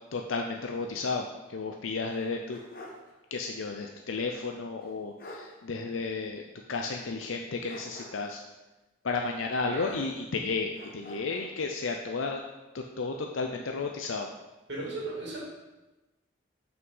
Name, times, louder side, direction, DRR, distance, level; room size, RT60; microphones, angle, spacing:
voice 1, 0.1-2.6 3.3-6.4 6.7-8.4 9.0-12.4 12.7-14.3, left 4 dB, 80° left, 2 dB, 0.6 m, -33 dB
sound 1, 2.1-3.1 3.4-3.5 4.8-4.9 5.2-5.5 7.6-8.4 9.8-10.4 10.7-11.6, left 1 dB, 45° left, 1.2 m, -47 dB
voice 2, 14.7-15.5, right 2 dB, 60° right, -3 dB, 2.2 m, -36 dB
6.3 x 6.0 x 5.4 m, 1.1 s
head